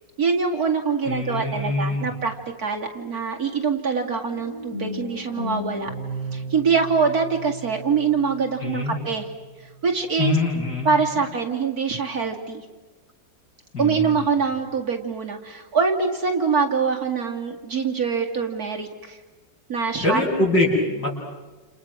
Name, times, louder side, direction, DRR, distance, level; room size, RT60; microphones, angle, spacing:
voice 1, 0.2-2.3 2.6-5.9 6.3-9.3 9.8-10.4 10.8-12.6 13.8-19.2 19.7-20.2, right 5 dB, 55° right, 1 dB, 2.7 m, -24 dB
voice 2, 1.0-2.1 8.6-9.0 10.2-11.0 13.7-14.2 20.0-21.1, left 2 dB, 60° left, -3 dB, 8.6 m, -23 dB
sound 1, 4.3-10.2, equal, 80° left, 4.7 m, -36 dB
30.0 x 29.0 x 6.2 m, 1.2 s
omnidirectional pair, 2.0 m